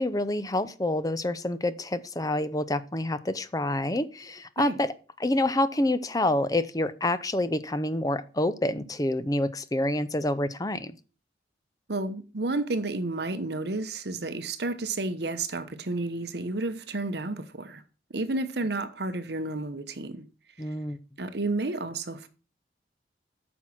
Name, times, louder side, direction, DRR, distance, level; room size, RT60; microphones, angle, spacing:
voice 1, 0.0-4.9 5.2-10.9 20.6-21.0, left 1 dB, 20° left, 0.6 m, -27 dB
voice 2, 11.9-17.8 18.1-20.2 21.2-22.3, right 2 dB, 60° right, 1.0 m, -31 dB
9.1 x 6.1 x 5.8 m
head